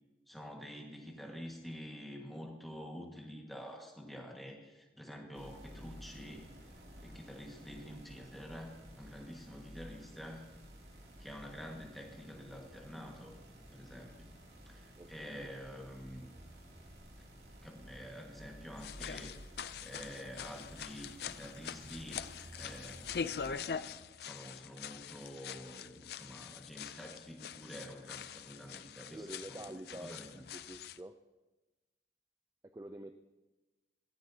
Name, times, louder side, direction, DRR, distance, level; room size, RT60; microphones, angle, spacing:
voice 1, 0.3-6.5 7.0-10.4 11.2-13.4 13.7-14.3 14.7-16.3 17.6-19.3 19.8-22.3 22.6-29.7 30.0-30.4, equal, ahead, 0 dB, 1.6 m, -48 dB
voice 2, 5.2-5.5 15.0-15.6 29.1-31.1 32.6-33.1, right 1 dB, 15° right, 7 dB, 0.4 m, -48 dB
sound 1, 5.3-23.5, equal, 65° right, 2.7 m, -54 dB
sound 2, 18.7-31.0, left 7 dB, 60° left, 0.4 m, -44 dB
17.5 x 14.5 x 2.8 m, 1.1 s
head